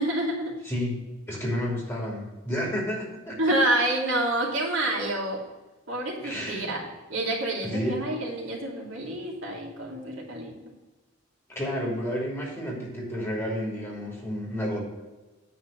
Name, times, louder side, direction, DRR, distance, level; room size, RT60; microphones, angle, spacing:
voice 1, 0.0-0.5 3.4-5.4 5.9-10.5, right 1 dB, 75° right, -3 dB, 2.7 m, -28 dB
voice 2, 0.6-3.4 6.2-6.7 7.6-8.0 11.5-14.8, equal, 15° left, -3 dB, 3.0 m, -31 dB
9.5 x 4.2 x 7.5 m, 1.2 s
head